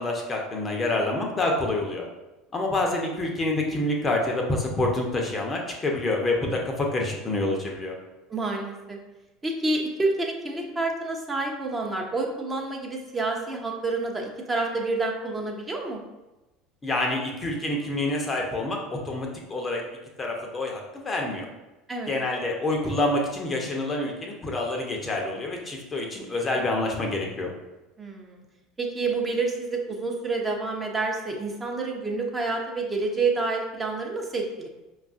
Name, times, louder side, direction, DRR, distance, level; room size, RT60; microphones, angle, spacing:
voice 1, 0.0-2.1 2.5-8.0 16.8-19.8 20.2-21.5 22.1-27.5, left 2 dB, 25° left, 0 dB, 0.7 m, -27 dB
voice 2, 8.3-9.0 9.4-16.0 21.9-22.1 28.0-28.4 28.8-34.7, right 3 dB, 20° right, -1 dB, 0.7 m, -28 dB
5.1 x 2.4 x 2.5 m, 1.1 s
figure-of-eight pair, 70°, 0 cm